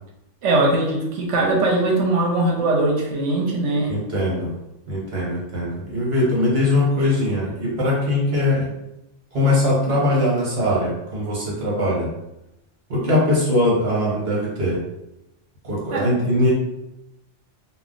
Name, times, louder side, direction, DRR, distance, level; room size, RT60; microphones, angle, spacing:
voice 1, 0.4-3.9 15.9-16.1, right 2 dB, 80° right, 0 dB, 1.0 m, -20 dB
voice 2, 3.9-4.5 4.9-8.7 9.3-12.1 12.9-14.8 15.6-16.5, left 1 dB, 55° right, -5 dB, 1.2 m, -21 dB
2.2 x 2.2 x 3.8 m, 0.89 s
omnidirectional pair, 1.2 m